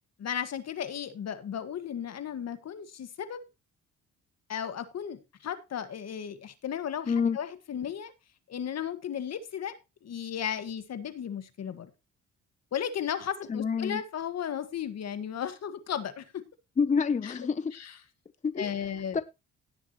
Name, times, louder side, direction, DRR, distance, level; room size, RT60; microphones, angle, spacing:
voice 1, 0.2-3.5 4.5-8.1 8.5-11.9 12.7-16.4 17.2-17.3 17.7-17.9 18.6-19.2, left 8 dB, 60° left, 1.7 m, -35 dB
voice 2, 7.1-7.4 13.5-14.0 16.8-17.7 18.4-18.7 19.1-19.2, left 5 dB, 25° left, 0.7 m, -27 dB
17.5 x 7.1 x 3.0 m
cardioid pair, 90°, 30 cm